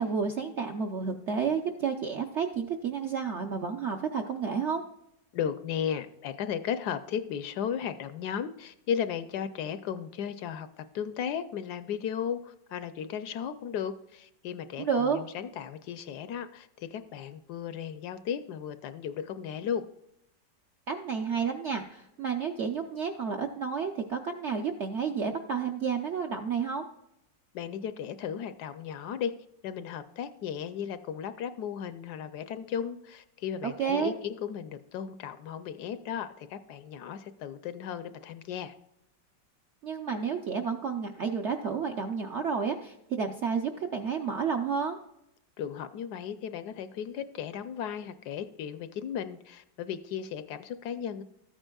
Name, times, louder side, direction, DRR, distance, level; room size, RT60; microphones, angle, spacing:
voice 1, 0.0-4.8 14.8-15.2 20.9-26.8 33.6-34.1 39.8-45.0, right 6 dB, 65° right, 4 dB, 0.7 m, -31 dB
voice 2, 5.3-19.9 27.5-29.3 29.6-38.7 45.6-51.2, left 8 dB, 70° left, 12 dB, 1.1 m, -35 dB
13.5 x 8.8 x 2.3 m, 0.82 s
omnidirectional pair, 1.9 m